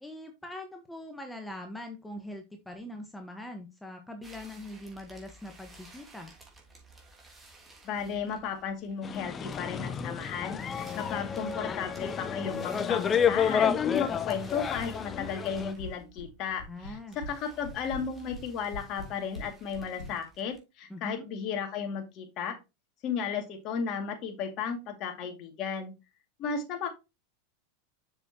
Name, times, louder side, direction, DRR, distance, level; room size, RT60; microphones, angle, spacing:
voice 1, 0.0-6.3 16.7-17.2 20.9-21.2, left 1 dB, 5° left, 4 dB, 1.3 m, -42 dB
sound 1, 4.2-20.6, right 3 dB, 15° right, 3.1 m, -55 dB
voice 2, 7.8-22.6 23.0-25.9 26.4-26.9, left 6 dB, 45° left, 4 dB, 2.3 m, -34 dB
sound 2, 9.0-15.7, left 7 dB, 25° left, 0.7 m, -30 dB
sound 3, 14.7-15.3 15.5-16.3 16.6-17.3 17.6-20.1, left 2 dB, 85° left, 1.8 m, -42 dB
7.2 x 6.8 x 2.9 m, 0.24 s
hypercardioid pair, 100°, 0 cm